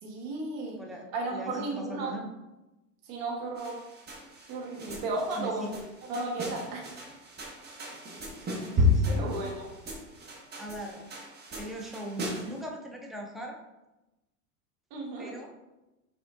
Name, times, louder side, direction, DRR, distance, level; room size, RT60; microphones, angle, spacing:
voice 1, 0.0-0.8 1.1-2.2 3.1-3.8 4.5-6.9 9.1-9.7 14.9-15.3, right 2 dB, 45° right, -1 dB, 1.3 m, -34 dB
voice 2, 0.8-2.3 4.8-5.1 5.4-5.7 8.5-9.4 10.6-11.1 11.6-13.6 15.2-15.6, equal, ahead, 0 dB, 0.3 m, -40 dB
sound 1, 3.6-12.6, left 2 dB, 20° right, 1.1 m, -33 dB
6.1 x 3.5 x 2.5 m, 1.0 s
hypercardioid pair, 105°, 46 cm